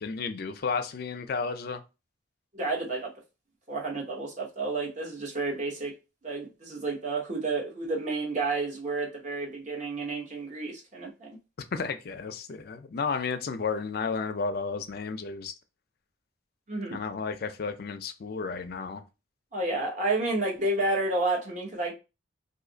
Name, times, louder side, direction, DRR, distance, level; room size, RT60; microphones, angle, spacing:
voice 1, 0.0-1.8 11.7-15.5 16.9-19.0, left 5 dB, 50° left, 0.4 m, -32 dB
voice 2, 2.5-3.1 3.7-5.9 6.2-11.4 16.7-17.0 19.5-21.9, right 2 dB, 40° right, 0.9 m, -30 dB
2.6 x 2.4 x 3.8 m
head